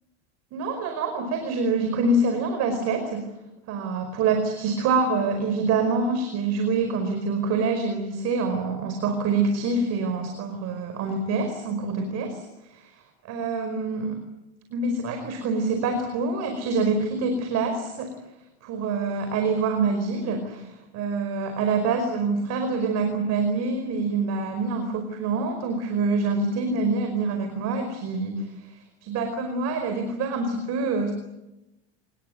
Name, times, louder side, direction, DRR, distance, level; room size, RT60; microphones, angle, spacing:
voice 1, 0.5-3.2 3.7-12.4 12.7-12.9 13.3-14.2 14.7-18.1 18.6-31.1, right 3 dB, 50° right, 6 dB, 5.0 m, -26 dB
25.5 x 21.0 x 9.4 m, 0.98 s
supercardioid pair, 115°, 34 cm